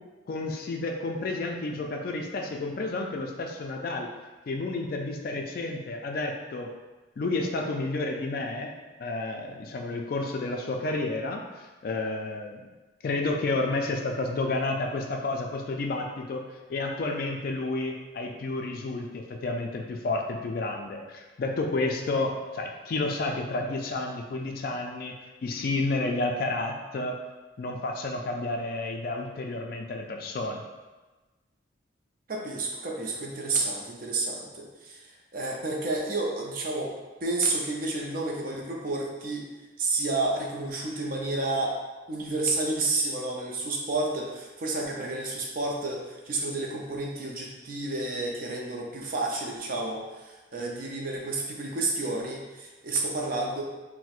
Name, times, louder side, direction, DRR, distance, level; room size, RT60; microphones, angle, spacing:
voice 1, 0.3-4.1 4.5-6.7 7.2-8.7 9.0-12.6 13.0-16.4 16.7-25.1 25.4-27.2 27.6-30.6, left 2 dB, 50° left, 2 dB, 0.3 m, -31 dB
voice 2, 32.3-35.1 35.3-36.9 37.2-39.5 39.8-41.8 42.1-53.6, right 2 dB, 50° right, -1 dB, 0.5 m, -30 dB
4.2 x 2.1 x 2.4 m, 1.2 s
head